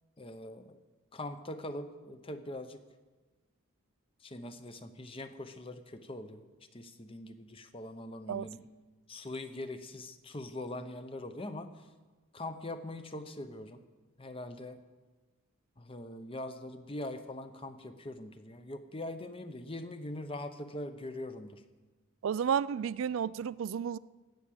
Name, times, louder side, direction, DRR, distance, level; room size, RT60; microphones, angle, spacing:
voice 1, 0.2-0.8 1.1-2.8 4.2-6.5 6.7-8.6 9.1-11.9 12.3-13.8 14.2-14.8 15.8-21.6, left 1 dB, 25° left, 0.8 m, -42 dB
voice 2, 22.2-24.0, right 8 dB, 60° right, 0.3 m, -32 dB
16.0 x 6.0 x 8.5 m
head